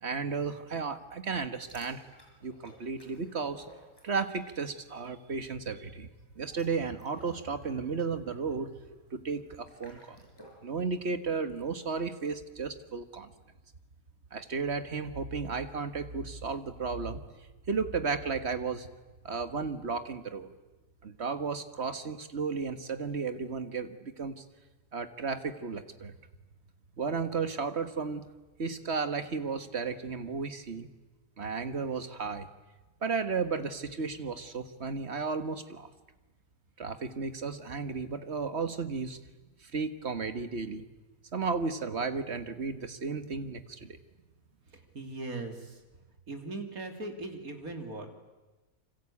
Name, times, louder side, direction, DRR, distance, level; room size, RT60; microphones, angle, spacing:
voice 1, 0.0-2.0 2.4-3.6 4.0-8.7 9.1-10.3 10.6-13.3 14.3-17.2 17.7-18.9 19.2-20.5 21.0-24.4 24.9-26.1 27.0-28.2 28.6-30.9 31.4-32.5 33.0-35.9 36.8-39.2 39.6-40.8 41.3-44.0, right 5 dB, 45° right, 9 dB, 1.7 m, -34 dB
sound 1, 1.6-4.5 4.8-5.1 6.3-10.7, equal, 15° left, 5.9 m, -57 dB
voice 2, 44.9-45.8 46.3-48.1, right 2 dB, 65° right, 4 dB, 3.4 m, -39 dB
27.0 x 25.5 x 8.6 m, 1.2 s
omnidirectional pair, 1.6 m